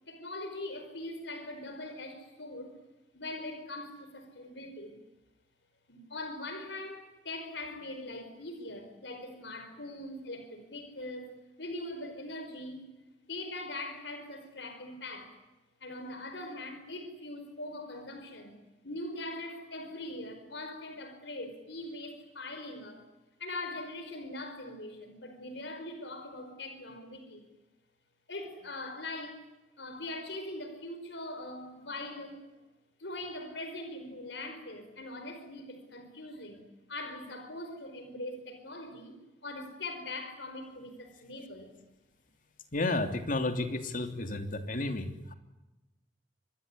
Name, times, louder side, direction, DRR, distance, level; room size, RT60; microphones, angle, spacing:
voice 1, 0.1-2.8 3.1-5.0 5.9-12.9 13.3-15.4 15.8-18.6 18.8-23.0 23.4-27.5 28.3-29.4 29.8-32.4 33.0-39.1 39.4-41.7, left 2 dB, 75° left, 7 dB, 5.0 m, -41 dB
voice 2, 42.7-45.3, left 2 dB, 50° left, 7 dB, 3.1 m, -32 dB
26.5 x 22.0 x 9.9 m, 1.0 s
head